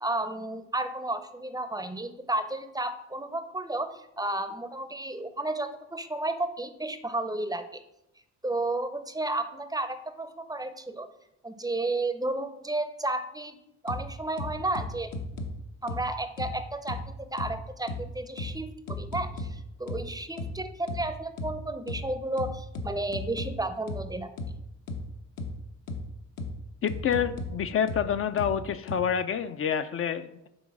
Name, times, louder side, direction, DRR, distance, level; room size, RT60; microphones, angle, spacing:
voice 1, 0.0-7.8 8.4-11.1 11.4-13.6 13.8-15.1 15.8-17.0 17.3-24.3, right 2 dB, 15° right, 10 dB, 0.5 m, -32 dB
sound 1, 13.9-14.0 14.4-15.5 15.9-16.0 16.4-16.5 16.9-17.0 17.4-17.5 17.9-18.0 18.4-18.5 18.9-19.5 19.9-20.0 20.4-20.5 20.9-21.0 21.4-21.5 21.9-22.0 22.4-23.5 23.9-24.0 24.4-24.5 24.9-25.0 25.4-25.5 25.9-26.0 26.4-26.5 26.9-27.5 27.9-28.0 28.4-28.5 28.9-29.0, left 3 dB, 70° left, 1.0 m, -34 dB
voice 2, 26.8-30.5, left 8 dB, 45° left, 10 dB, 0.4 m, -28 dB
6.3 x 3.9 x 5.9 m, 0.85 s
cardioid pair, 90°, 30 cm